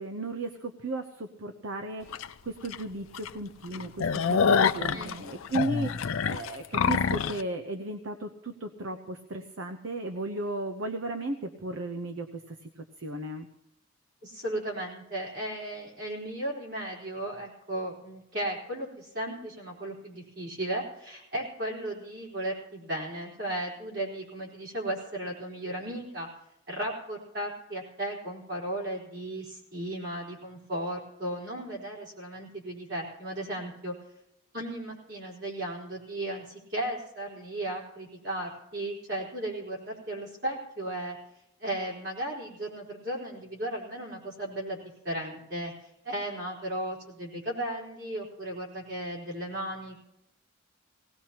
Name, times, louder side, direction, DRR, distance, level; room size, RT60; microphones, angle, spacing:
voice 1, 0.0-13.5, right 2 dB, 75° right, 6 dB, 0.8 m, -35 dB
sound 1, 2.1-2.3 2.7-2.8 3.1-3.3 3.6-7.4, left 6 dB, 90° left, 0.5 m, -26 dB
voice 2, 14.2-26.3 26.7-33.9 34.5-41.2 41.6-44.8 45.0-45.7 46.0-49.9, right 1 dB, 55° right, -3 dB, 4.0 m, -35 dB
19.0 x 18.0 x 2.9 m, 0.84 s
head